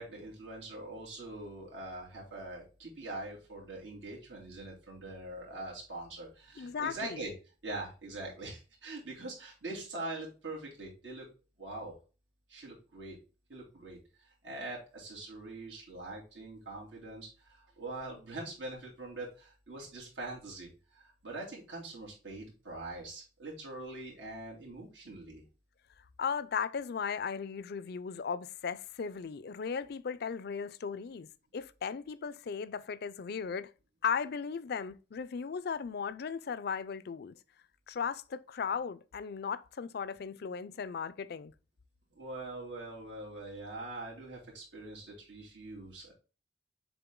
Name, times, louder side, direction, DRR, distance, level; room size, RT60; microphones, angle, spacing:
voice 1, 0.0-7.3 7.6-11.3 11.6-11.9 12.5-13.2 13.5-25.4 42.1-46.1, right 2 dB, 90° right, 2.7 m, -43 dB
voice 2, 6.6-7.2 26.2-31.3 31.5-33.7 34.0-37.4 37.9-41.5, left 6 dB, 60° left, 0.4 m, -36 dB
6.9 x 3.8 x 3.7 m
head